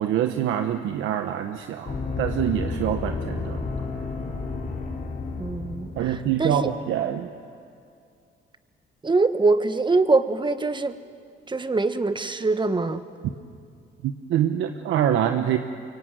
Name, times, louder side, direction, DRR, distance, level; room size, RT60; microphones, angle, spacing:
voice 1, 0.0-3.6 6.0-7.3 14.0-15.6, right 10 dB, 85° right, 7 dB, 1.1 m, -25 dB
sound 1, 1.8-6.7, left 4 dB, 45° left, 3.8 m, -31 dB
voice 2, 5.4-5.9 6.4-6.7 9.0-10.9 11.5-13.0, right 3 dB, 25° right, 10 dB, 1.4 m, -23 dB
23.5 x 23.5 x 9.3 m, 2.4 s
cardioid pair, 90°, 20 cm